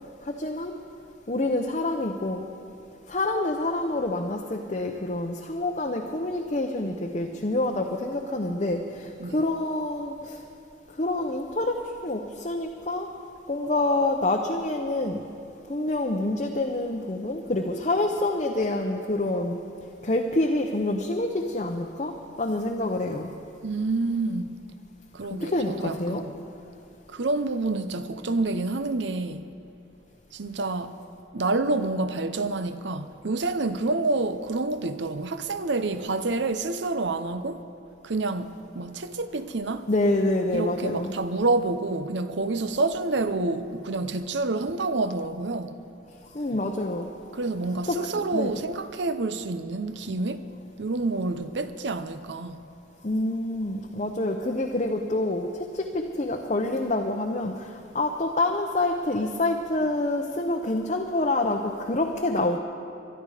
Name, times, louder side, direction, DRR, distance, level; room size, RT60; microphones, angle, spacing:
voice 1, 0.2-0.7 1.3-2.4 3.1-10.4 11.0-13.1 13.5-15.2 15.7-19.6 20.0-23.3 25.3-26.2 39.9-41.1 46.3-47.1 47.9-48.6 53.0-62.6, left 2 dB, 35° left, 0.8 m, -27 dB
voice 2, 23.6-24.5 25.1-26.3 27.1-29.5 30.3-30.9 31.3-37.6 38.0-39.9 40.5-45.7 47.3-50.5 50.8-52.6, right 3 dB, 70° right, 0.8 m, -28 dB
23.5 x 11.5 x 5.0 m
head